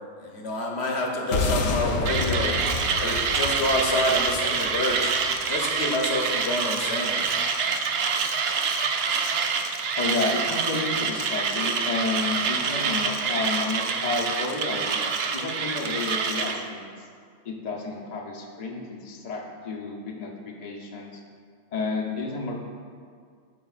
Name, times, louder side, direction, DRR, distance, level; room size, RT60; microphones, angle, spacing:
voice 1, 0.2-2.5 3.0-5.1 5.5-7.2, left 1 dB, 60° left, 0 dB, 1.1 m, -27 dB
sound 1, 1.3-5.8, left 3 dB, 80° left, 1.0 m, -29 dB
Mechanisms, 2.1-16.6, right 5 dB, 65° right, 0.7 m, -26 dB
voice 2, 10.0-15.0 15.3-17.1 17.4-21.2 21.7-22.6, left 3 dB, 40° left, -1 dB, 0.7 m, -31 dB
13.0 x 4.9 x 2.4 m, 2.1 s
omnidirectional pair, 1.3 m